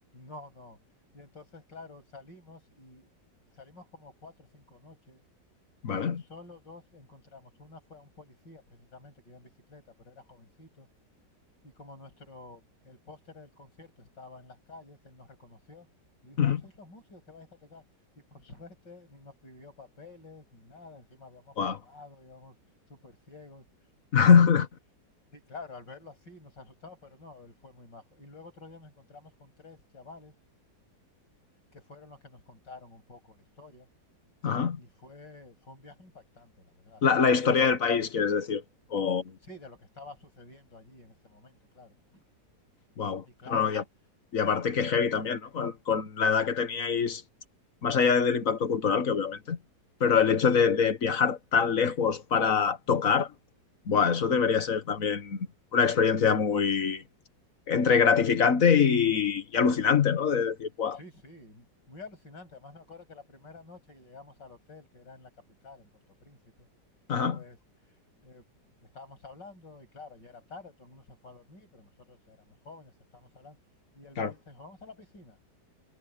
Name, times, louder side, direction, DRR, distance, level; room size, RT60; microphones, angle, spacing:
voice 1, 0.1-0.8 1.1-3.1 3.5-5.2 6.0-10.9 11.6-15.9 16.2-17.8 18.2-22.6 22.9-23.7 25.3-30.4 31.7-33.9 34.8-37.7 39.4-42.2 43.2-43.7 60.9-65.9 66.2-66.7 67.3-67.6 68.2-68.5 68.8-73.6 73.9-75.4, left 3 dB, 90° left, 8.8 m, -50 dB
voice 2, 5.8-6.2 16.4-16.6 21.6-21.8 24.1-24.7 34.4-34.8 37.0-38.6 38.9-39.3 43.0-43.2 43.5-43.8 44.3-47.2 47.8-49.6 50.0-53.3 53.9-55.5 55.7-57.0 57.7-61.0 67.1-67.4 74.2-74.3, left 6 dB, 50° left, 1.7 m, -24 dB
omnidirectional pair, 1.9 m